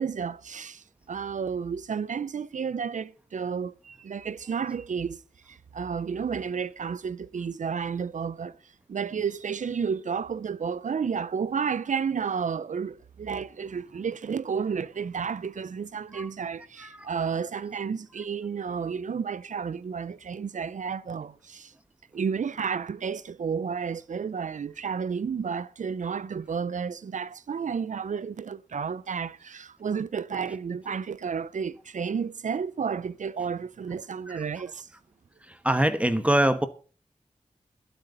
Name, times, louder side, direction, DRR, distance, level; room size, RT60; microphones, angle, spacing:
voice 1, 0.0-5.2 5.5-8.6 8.9-21.7 22.1-34.9, right 6 dB, 85° right, 0.6 m, -31 dB
voice 2, 16.8-17.1 30.5-30.6 34.3-34.5 35.4-36.7, right 1 dB, 10° right, 1.2 m, -25 dB
21.5 x 8.1 x 4.0 m
wide cardioid pair, 60°, 13 cm